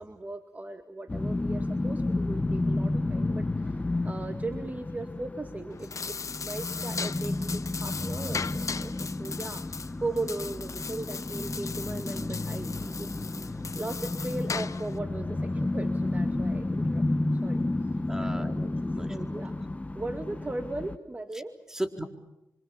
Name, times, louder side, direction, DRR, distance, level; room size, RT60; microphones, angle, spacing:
voice 1, 0.0-6.1 6.4-9.7 10.0-17.0 17.3-17.9 18.2-18.6 19.1-19.6 19.9-21.5, right 2 dB, 25° right, 6 dB, 2.2 m, -38 dB
sound 1, 1.1-21.0, left 2 dB, 20° left, 1.3 m, -31 dB
sound 2, 5.7-15.0, left 5 dB, 50° left, 0.9 m, -38 dB
voice 2, 18.1-19.4 21.7-22.0, right 1 dB, 5° right, 4 dB, 4.1 m, -36 dB
27.0 x 25.5 x 7.2 m, 0.89 s
cardioid pair, 60°, 7 cm